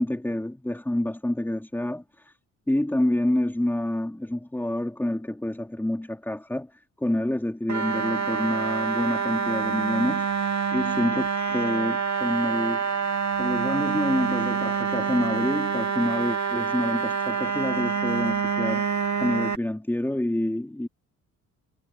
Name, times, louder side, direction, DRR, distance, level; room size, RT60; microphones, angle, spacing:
voice 1, 0.0-2.3 2.7-12.9 13.4-20.9, left 1 dB, 5° left, 3.8 m, -28 dB
sound 1, 7.7-19.6, right 6 dB, 60° right, 2.7 m, -26 dB
cardioid pair, 100°, 32 cm